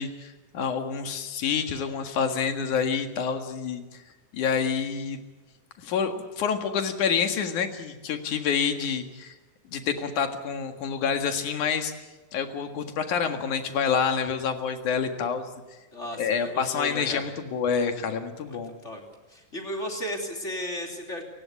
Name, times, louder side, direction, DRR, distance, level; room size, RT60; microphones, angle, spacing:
voice 1, 0.0-3.8 4.3-5.2 5.8-9.3 9.7-11.9 12.3-15.5 16.2-18.7, left 6 dB, 75° left, 6 dB, 3.3 m, -27 dB
voice 2, 15.9-17.2 18.4-19.0 19.3-21.2, equal, 20° left, 2 dB, 3.2 m, -35 dB
28.5 x 16.5 x 8.4 m, 1.2 s
omnidirectional pair, 3.6 m